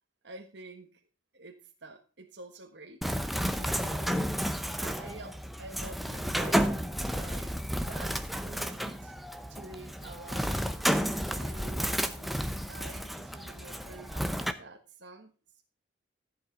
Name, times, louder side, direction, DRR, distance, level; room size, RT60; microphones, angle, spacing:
voice 1, 0.2-1.0 1.3-3.1 3.5-8.2 8.4-9.1 9.5-10.5 11.3-12.3 12.7-15.3, right 2 dB, 70° right, 2 dB, 1.4 m, -48 dB
Bird, 3.0-14.5, equal, ahead, 0.8 m, -32 dB
14.5 x 8.2 x 3.8 m, 0.37 s
head